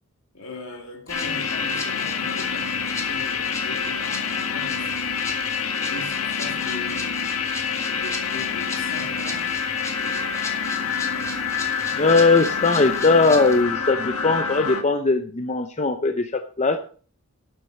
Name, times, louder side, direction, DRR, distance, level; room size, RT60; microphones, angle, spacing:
voice 1, 0.3-5.4 5.8-7.4 8.0-9.5, left 2 dB, 65° left, 2.7 m, -39 dB
sound 1, 1.1-14.8, left 6 dB, 90° left, 1.5 m, -27 dB
Rattle (instrument), 1.1-13.6, left 2 dB, 15° left, 1.8 m, -39 dB
voice 2, 11.9-16.8, left 3 dB, 30° left, 0.6 m, -20 dB
11.5 x 8.1 x 4.2 m
head